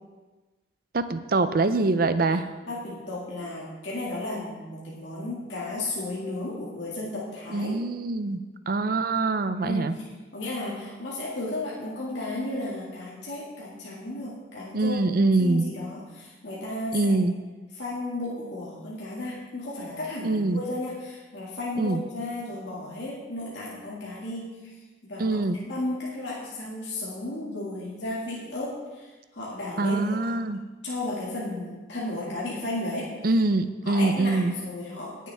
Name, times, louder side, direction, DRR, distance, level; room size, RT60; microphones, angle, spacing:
voice 1, 0.9-2.5 7.5-8.4 8.7-9.9 14.7-15.7 16.9-17.3 20.2-20.6 21.8-22.0 25.2-25.6 29.8-30.6 33.2-34.5, right 3 dB, 50° right, 11 dB, 0.5 m, -24 dB
voice 2, 2.7-7.7 9.6-10.1 10.3-15.0 15.4-17.1 17.7-24.6 25.0-25.4 25.6-30.1 30.8-33.1 33.8-35.3, left 2 dB, 70° left, -6 dB, 2.1 m, -34 dB
18.5 x 7.4 x 3.5 m, 1.2 s
head